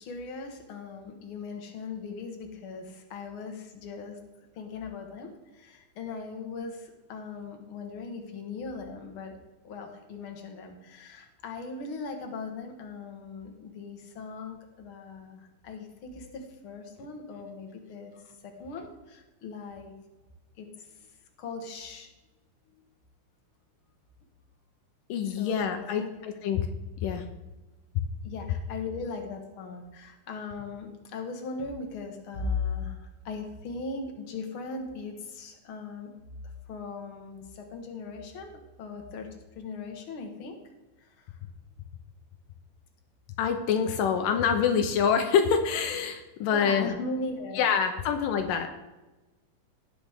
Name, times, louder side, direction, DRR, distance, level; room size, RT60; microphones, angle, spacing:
voice 1, 0.0-4.2 4.5-9.3 9.6-18.1 18.4-19.9 20.6-21.1 21.4-22.1 22.7-22.8 25.2-26.1 28.2-36.1 36.7-38.5 38.8-40.6 41.0-41.4 46.5-47.6, left 4 dB, 50° left, 3 dB, 1.7 m, -39 dB
voice 2, 25.1-26.7 27.0-27.3 43.4-47.0 47.6-48.7, left 7 dB, 80° left, 5 dB, 2.4 m, -26 dB
18.5 x 6.5 x 3.6 m, 1.1 s
omnidirectional pair, 4.0 m